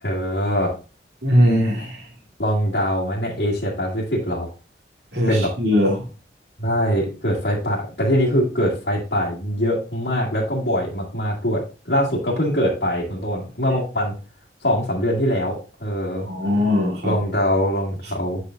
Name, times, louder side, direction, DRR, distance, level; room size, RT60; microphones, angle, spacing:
voice 1, 0.0-0.7 2.4-4.5 5.3-5.5 6.6-14.1 14.6-16.3 17.0-18.4, equal, 75° left, -5 dB, 2.0 m, -23 dB
voice 2, 1.2-2.1 5.1-6.0 16.2-17.1, left 1 dB, 75° right, -1 dB, 2.5 m, -20 dB
8.1 x 6.8 x 2.5 m, 0.33 s
head